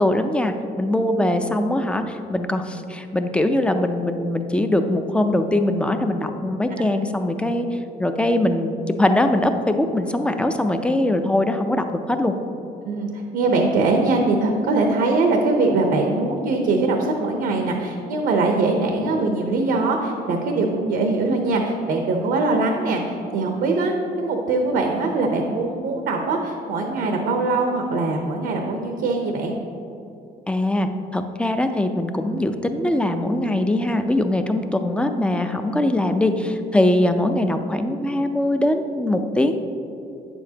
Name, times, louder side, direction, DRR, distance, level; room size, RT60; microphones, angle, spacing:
voice 1, 0.0-8.7 9.0-12.3 30.5-39.6, left 1 dB, 5° left, 7 dB, 0.4 m, -22 dB
voice 2, 12.8-29.5, right 3 dB, 75° right, 2 dB, 0.8 m, -22 dB
8.6 x 7.1 x 2.8 m, 2.7 s
cardioid pair, 110°, 17 cm